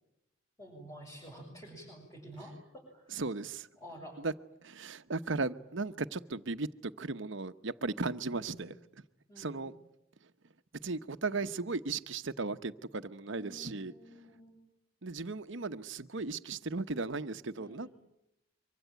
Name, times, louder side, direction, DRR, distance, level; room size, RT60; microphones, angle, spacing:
voice 1, 0.6-3.1 3.8-4.2 8.2-8.7 9.3-9.7 13.3-14.6 17.6-17.9, equal, 15° left, -4 dB, 7.2 m, -50 dB
voice 2, 3.1-3.7 4.2-4.3 4.6-8.7 9.4-9.7 10.8-13.9 15.0-17.9, right 3 dB, 65° right, 11 dB, 0.9 m, -36 dB
24.5 x 24.0 x 9.3 m, 0.85 s
head